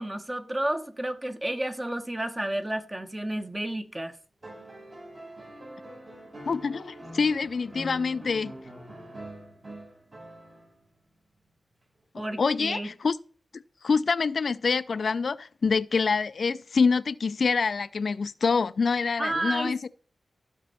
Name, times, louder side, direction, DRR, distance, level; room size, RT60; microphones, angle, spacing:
voice 1, 0.0-4.1 12.2-12.9 19.2-19.9, right 1 dB, 20° right, 1.2 m, -31 dB
sound 1, 4.4-10.9 12.3-12.4, equal, 50° right, 5.3 m, -44 dB
voice 2, 6.5-8.5 12.1-13.2 13.8-19.9, left 5 dB, 65° left, 0.4 m, -26 dB
15.0 x 5.3 x 4.2 m
cardioid pair, 60°, 0 cm